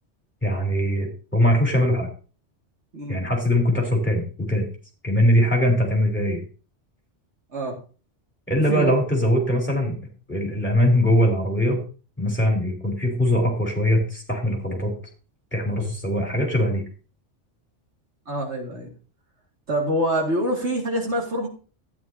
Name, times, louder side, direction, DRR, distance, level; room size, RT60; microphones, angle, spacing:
voice 1, 0.4-2.1 3.1-4.6 5.0-6.4 8.5-10.0 10.3-11.8 12.2-14.9 15.5-16.8, equal, 10° left, -1 dB, 3.6 m, -21 dB
voice 2, 18.3-18.9 19.7-21.5, right 1 dB, 70° right, -1 dB, 2.4 m, -25 dB
13.0 x 9.5 x 2.8 m, 0.37 s
omnidirectional pair, 1.2 m